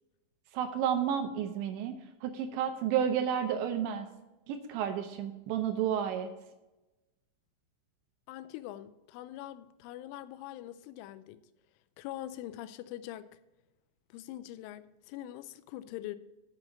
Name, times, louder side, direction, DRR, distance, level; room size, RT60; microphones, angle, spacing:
voice 1, 0.5-4.1 4.5-6.3, right 9 dB, 80° right, 2.8 m, -31 dB
voice 2, 8.3-11.4 12.0-13.3 14.1-16.2, left 13 dB, 85° left, 3.0 m, -43 dB
7.9 x 5.8 x 7.7 m
omnidirectional pair, 5.5 m